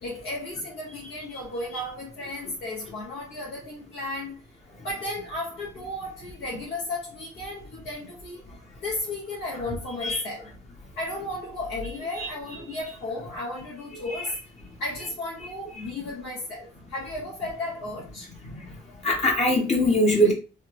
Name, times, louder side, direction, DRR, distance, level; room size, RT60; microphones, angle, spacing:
voice 1, 0.0-4.4 4.8-8.6 8.8-10.5 11.0-14.4 14.8-18.3, left 2 dB, 80° left, 1.0 m, -34 dB
voice 2, 19.0-20.3, equal, 35° left, 0.8 m, -22 dB
3.2 x 2.1 x 3.0 m
cardioid pair, 90°, 20 cm